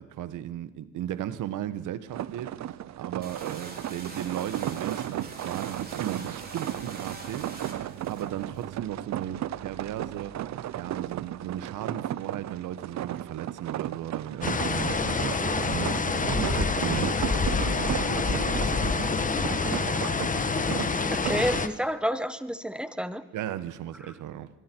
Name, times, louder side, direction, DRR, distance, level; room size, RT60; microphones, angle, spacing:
voice 1, 0.0-10.3 10.7-19.9 21.3-21.4 23.3-24.5, right 11 dB, 85° right, 13 dB, 1.3 m, -36 dB
sound 1, 2.1-21.6, right 12 dB, 65° right, 0.7 m, -35 dB
sound 2, 3.2-8.7, right 3 dB, 30° right, 5.2 m, -44 dB
sound 3, 14.4-21.7, left 4 dB, 25° left, 1.3 m, -27 dB
voice 2, 21.1-23.2, equal, 5° right, 12 dB, 1.2 m, -29 dB
25.5 x 22.0 x 4.6 m, 1.0 s
cardioid pair, 90°, 30 cm